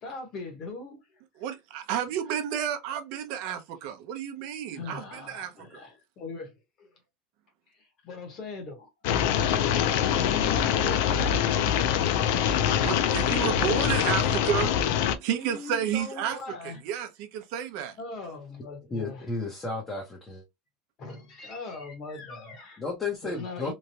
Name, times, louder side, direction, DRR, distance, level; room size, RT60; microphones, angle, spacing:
voice 1, 0.0-1.0 4.7-6.9 7.7-8.9 10.1-11.8 13.4-14.2 15.3-16.8 18.0-19.2 21.0-22.8 23.2-23.7, left 3 dB, 35° left, 1.1 m, -39 dB
voice 2, 1.4-5.8 12.8-16.4 16.6-18.0, right 9 dB, 55° right, 0.6 m, -31 dB
sound 1, 9.0-15.2, left 9 dB, 65° left, 0.4 m, -24 dB
voice 3, 18.9-20.4 22.8-23.7, left 3 dB, 15° left, 0.8 m, -33 dB
3.1 x 2.3 x 2.7 m
cardioid pair, 175°, 0 cm